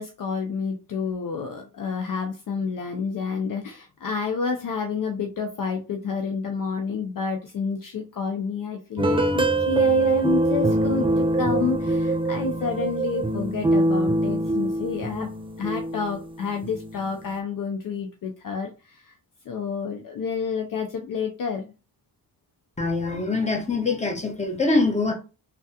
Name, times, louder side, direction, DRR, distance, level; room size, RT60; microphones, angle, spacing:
voice 1, 0.0-15.3 15.6-19.1 19.5-21.7, left 5 dB, 50° left, 0.6 m, -29 dB
sound 1, 9.0-17.2, right 2 dB, 15° right, 0.4 m, -24 dB
voice 2, 22.8-25.1, left 3 dB, 15° left, 1.1 m, -24 dB
3.3 x 2.2 x 2.8 m
cardioid pair, 60°, 43 cm